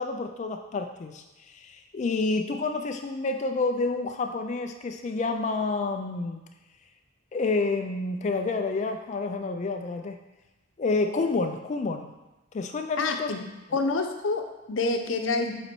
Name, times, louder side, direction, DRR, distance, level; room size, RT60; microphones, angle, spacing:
voice 1, 0.0-6.4 7.3-10.2 10.8-12.1 12.5-13.3, left 3 dB, 35° left, 5 dB, 0.3 m, -29 dB
voice 2, 13.0-13.4 13.7-15.6, left 3 dB, 85° left, 5 dB, 0.7 m, -27 dB
7.9 x 4.2 x 4.4 m, 1.1 s
head